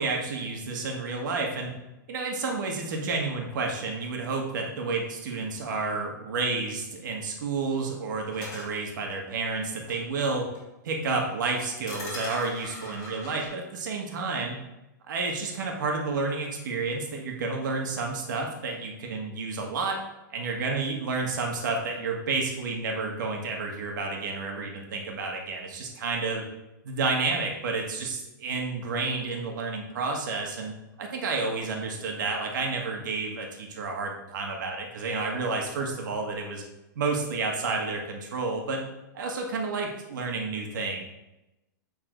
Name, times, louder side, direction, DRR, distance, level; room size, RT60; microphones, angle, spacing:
voice 1, 0.0-1.7 2.1-10.5 10.9-14.6 15.1-20.0 20.3-26.5 26.8-36.6 36.9-38.8 39.1-41.0, right 3 dB, 70° right, 1 dB, 1.5 m, -30 dB
sound 1, 8.3-8.7 9.9-10.0 10.5-10.6 11.9-13.5, left 1 dB, 35° left, 2.5 m, -39 dB
8.0 x 3.9 x 3.8 m, 0.95 s
hypercardioid pair, 150°, 11 cm